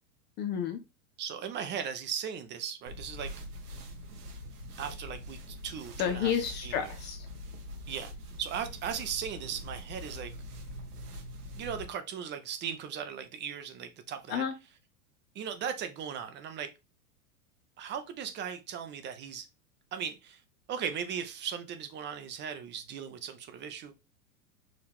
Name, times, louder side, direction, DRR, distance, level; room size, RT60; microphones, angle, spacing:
voice 1, 0.4-0.8 6.0-7.3 14.3-14.5, left 8 dB, 25° left, 0.4 m, -31 dB
voice 2, 1.2-3.3 4.8-6.3 6.6-6.9 7.9-8.1 8.4-10.3 11.5-14.4 15.3-16.7 17.8-19.5 19.9-20.4 20.7-23.9, right 8 dB, 25° right, 0.6 m, -37 dB
sound 1, 2.9-11.9, left 1 dB, 85° right, 1.4 m, -44 dB
4.8 x 2.9 x 3.4 m
hypercardioid pair, 120°, 45 cm